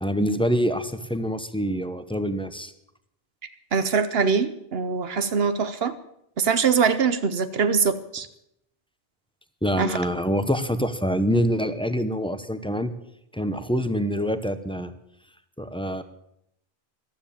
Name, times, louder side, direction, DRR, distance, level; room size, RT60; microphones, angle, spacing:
voice 1, 0.0-2.7 9.6-12.9 13.3-14.9 15.6-16.0, equal, 5° left, 10 dB, 0.8 m, -25 dB
voice 2, 3.7-5.9 6.4-8.3 9.8-10.0, right 5 dB, 70° right, 12 dB, 1.1 m, -23 dB
14.5 x 12.5 x 7.2 m, 0.79 s
omnidirectional pair, 1.0 m